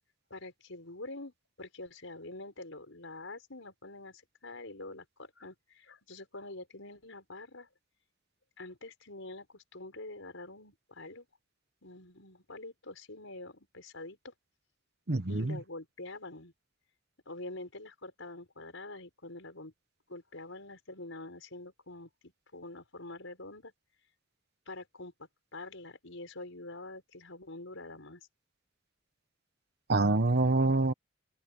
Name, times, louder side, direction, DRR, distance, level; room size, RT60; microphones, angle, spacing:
voice 1, 0.3-7.7 8.6-11.3 11.8-14.3 15.3-16.5 17.3-19.7 20.1-23.7 24.7-28.3, left 2 dB, 75° left, 5.3 m, -46 dB
voice 2, 15.1-15.6 29.9-30.9, right 2 dB, 55° right, 1.2 m, -26 dB
open air
head